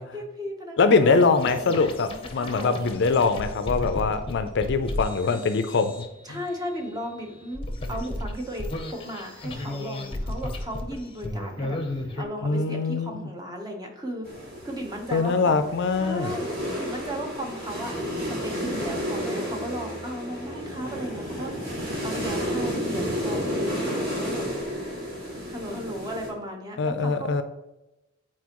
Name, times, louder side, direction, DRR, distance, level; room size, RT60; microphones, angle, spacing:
voice 1, 0.1-1.8 2.4-2.8 5.2-5.4 6.2-15.7 16.0-18.0 18.4-24.5 25.5-27.4, equal, 20° right, 2 dB, 0.9 m, -36 dB
voice 2, 0.8-5.9 6.3-6.4 12.4-13.2 15.1-16.4 26.8-27.4, left 4 dB, 60° left, 10 dB, 0.5 m, -23 dB
sound 1, 1.1-12.2, left 1 dB, 25° left, 0.7 m, -35 dB
sound 2, 14.2-26.3, equal, 50° right, 2.4 m, -31 dB
8.3 x 4.3 x 3.0 m, 0.96 s
head